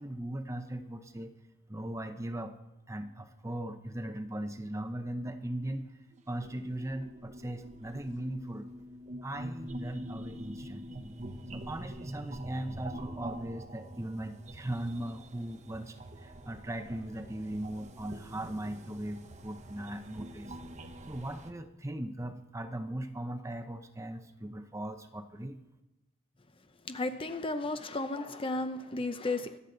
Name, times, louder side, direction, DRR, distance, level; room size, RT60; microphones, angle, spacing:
voice 1, 0.0-1.3 1.7-2.5 2.9-5.8 6.3-8.7 9.2-11.2 11.5-15.9 16.2-20.5 21.1-25.6, right 1 dB, 15° right, 8 dB, 0.7 m, -38 dB
sound 1, 6.1-21.5, right 1 dB, 35° right, 1.0 m, -45 dB
voice 2, 26.9-29.6, left 2 dB, 25° left, 9 dB, 0.7 m, -34 dB
25.0 x 8.3 x 3.9 m, 1.0 s
head